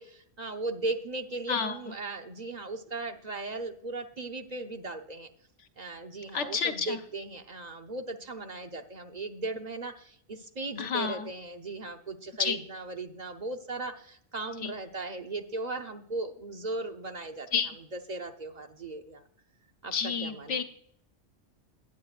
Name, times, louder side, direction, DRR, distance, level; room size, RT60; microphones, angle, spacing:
voice 1, 0.0-5.3 5.8-17.5 17.9-19.2 19.8-19.9 20.2-20.6, right 2 dB, 40° right, 6 dB, 0.8 m, -37 dB
voice 2, 1.5-1.9 6.3-7.0 10.8-11.3 12.4-12.6 14.6-14.7 17.5-17.7 19.9-20.6, left 6 dB, 90° left, 7 dB, 1.3 m, -30 dB
16.0 x 9.5 x 2.5 m, 0.68 s
omnidirectional pair, 1.2 m